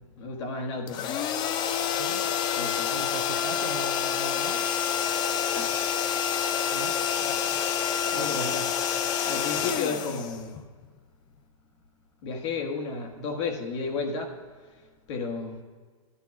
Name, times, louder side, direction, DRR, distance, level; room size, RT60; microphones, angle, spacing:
voice 1, 0.2-1.2 2.6-3.1 5.5-5.7 7.2-7.4 8.1-8.7 9.3-10.7 12.2-14.3 15.1-15.6, left 4 dB, 55° left, 2 dB, 1.5 m, -33 dB
sound 1, 0.9-10.8, left 8 dB, 25° left, 0.4 m, -28 dB
voice 2, 2.9-4.7 6.7-7.0 8.1-8.6 9.6-9.8, right 7 dB, 85° right, 8 dB, 0.8 m, -39 dB
15.0 x 11.5 x 2.4 m, 1.5 s
hypercardioid pair, 135°, 18 cm